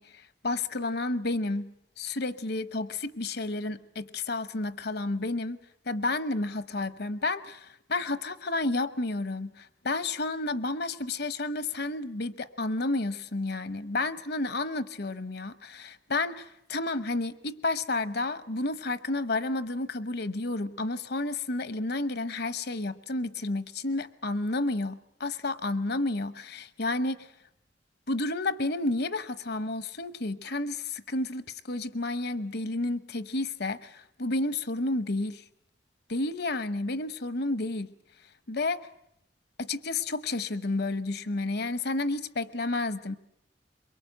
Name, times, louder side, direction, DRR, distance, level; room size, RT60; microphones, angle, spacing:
voice 1, 0.0-1.7 2.0-5.6 5.9-27.3 28.1-35.4 36.1-37.9 38.5-38.8 39.6-43.2, left 2 dB, 65° left, 14 dB, 1.0 m, -31 dB
23.0 x 22.5 x 7.9 m, 0.79 s
head